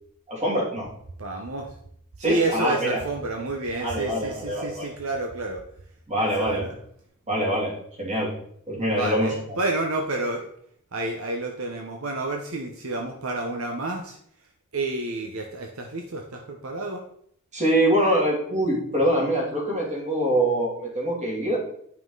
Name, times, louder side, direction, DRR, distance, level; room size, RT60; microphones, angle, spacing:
voice 1, 0.3-0.9 2.2-3.0 3.8-4.9 6.1-6.7 7.3-7.7 8.0-8.3 8.7-9.6 17.5-21.6, right 1 dB, 35° right, -3 dB, 2.8 m, -24 dB
voice 2, 1.2-1.8 2.2-5.6 6.2-6.7 9.0-10.5 10.9-14.2 14.7-17.0, right 2 dB, 70° right, 2 dB, 0.9 m, -29 dB
9.3 x 5.8 x 3.9 m, 0.67 s
head